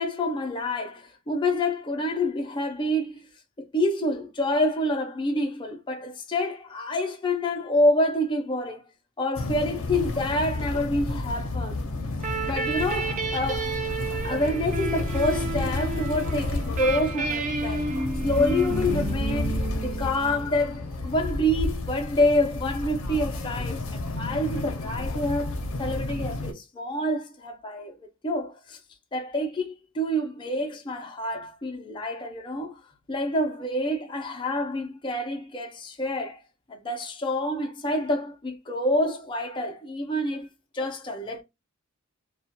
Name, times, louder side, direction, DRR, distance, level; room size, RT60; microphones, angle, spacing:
voice 1, 0.0-3.2 3.6-8.8 9.2-11.8 12.5-13.7 14.2-17.9 18.2-27.9 28.2-28.8 29.1-32.8 33.1-36.4 36.7-40.5 40.7-41.4, left 1 dB, 20° left, 0.4 m, -27 dB
sound 1, 9.4-26.5, left 2 dB, 70° left, 0.6 m, -31 dB
sound 2, 12.2-20.7, right 3 dB, 35° right, 0.4 m, -31 dB
2.3 x 2.1 x 2.6 m
head